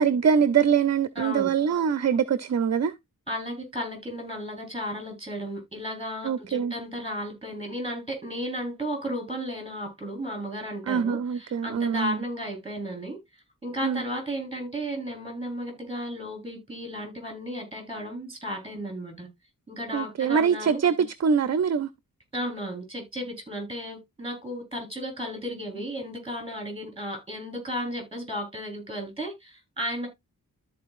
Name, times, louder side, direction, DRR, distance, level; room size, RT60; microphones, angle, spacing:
voice 1, 0.0-2.9 6.2-6.7 10.9-12.2 13.8-14.0 19.9-21.9, right 7 dB, 50° right, 0.5 m, -23 dB
voice 2, 1.2-1.5 3.3-13.2 13.6-19.3 19.7-20.8 22.3-30.1, equal, 15° right, 4.0 m, -34 dB
13.5 x 4.4 x 2.5 m
wide cardioid pair, 110°, 35 cm